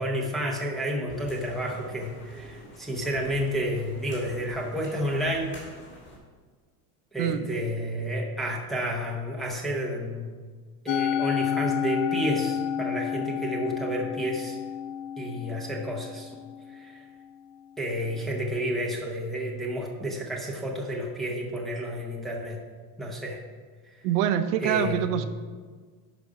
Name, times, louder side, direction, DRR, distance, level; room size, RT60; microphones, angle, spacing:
voice 1, 0.0-5.5 7.1-10.3 10.8-14.6 15.2-16.3 16.7-17.0 17.8-22.6 23.0-23.4 24.6-25.1, equal, ahead, -3 dB, 0.7 m, -30 dB
sound 1, 1.1-6.2, equal, 25° left, 2.3 m, -47 dB
voice 2, 7.2-7.6 24.0-25.3, right 9 dB, 90° right, 9 dB, 0.8 m, -25 dB
Musical instrument, 10.9-17.3, left 9 dB, 70° left, 0.6 m, -30 dB
11.0 x 5.3 x 4.8 m, 1.5 s
cardioid pair, 180°, 45 cm